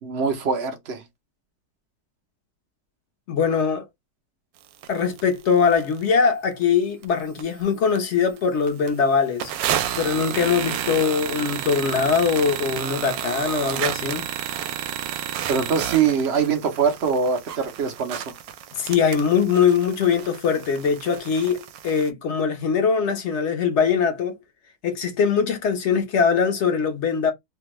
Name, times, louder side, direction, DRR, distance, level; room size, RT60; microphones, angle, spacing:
voice 1, 0.0-1.0 15.5-18.2, right 6 dB, 60° right, 0.7 m, -23 dB
voice 2, 3.3-3.8 4.9-9.5 10.0-14.3 18.8-24.4 24.8-27.3, left 6 dB, 55° left, 0.8 m, -22 dB
sound 1, 4.8-4.9 5.2-5.3 5.7-6.1 6.6-6.7 7.0-7.6 8.0-8.1 8.4-8.5 8.7-8.9 9.4-22.1, right 10 dB, 80° right, 1.2 m, -31 dB
3.4 x 2.2 x 3.0 m
omnidirectional pair, 1.9 m